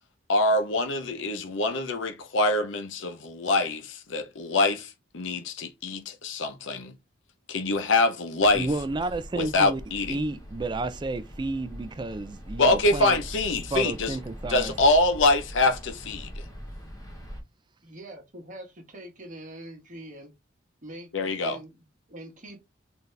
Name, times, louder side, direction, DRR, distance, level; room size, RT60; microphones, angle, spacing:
voice 1, 0.3-6.9 7.5-8.7 9.3-10.2 12.6-14.1 14.5-16.4 21.1-21.6, left 2 dB, 75° left, 0.7 m, -25 dB
sound 1, 8.4-17.4, equal, 20° left, 1.0 m, -42 dB
voice 2, 8.5-9.8 10.1-13.2 13.7-14.7, right 2 dB, 25° right, 0.3 m, -31 dB
voice 3, 17.8-20.3 20.8-21.1 21.4-22.6, right 1 dB, 40° right, 1.2 m, -43 dB
4.1 x 2.7 x 3.3 m
head